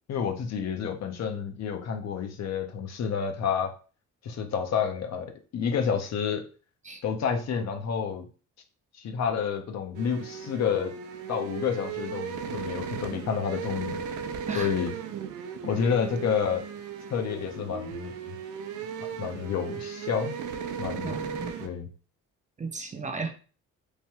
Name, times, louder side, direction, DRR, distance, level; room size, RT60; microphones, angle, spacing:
voice 1, 0.1-3.7 4.2-6.4 7.0-8.3 9.0-10.9 11.3-14.0 14.5-14.9 15.6-16.6 17.1-18.1 19.2-20.4 20.8-21.2 21.6-21.9, left 7 dB, 60° left, 5 dB, 0.7 m, -29 dB
sound 1, 9.9-21.7, right 7 dB, 75° right, 0.5 m, -36 dB
voice 2, 21.0-21.5 22.6-23.3, right 4 dB, 25° right, 5 dB, 0.5 m, -34 dB
3.2 x 2.2 x 2.8 m, 0.37 s
cardioid pair, 90°, 30 cm